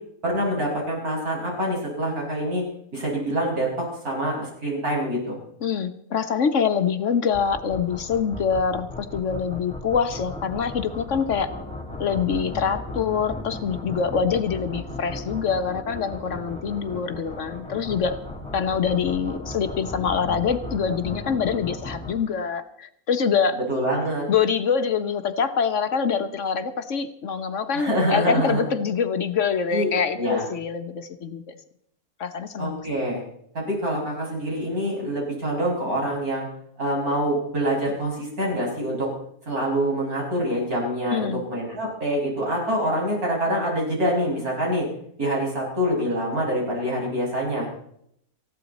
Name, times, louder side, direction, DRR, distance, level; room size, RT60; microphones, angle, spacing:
voice 1, 0.2-2.6 2.9-5.4 23.7-24.2 27.7-28.6 29.7-29.9 30.2-30.4 32.6-33.2 33.5-36.5 36.8-39.1 39.5-44.9 45.2-47.7, equal, 75° right, -3 dB, 6.7 m, -25 dB
voice 2, 5.6-11.5 12.0-18.1 18.5-23.6 24.3-31.5 32.2-32.8 41.1-41.4, left 6 dB, 60° left, 9 dB, 1.1 m, -25 dB
sound 1, 7.3-22.1, left 2 dB, 5° left, 3.1 m, -36 dB
19.5 x 14.5 x 4.1 m, 0.71 s
omnidirectional pair, 1.6 m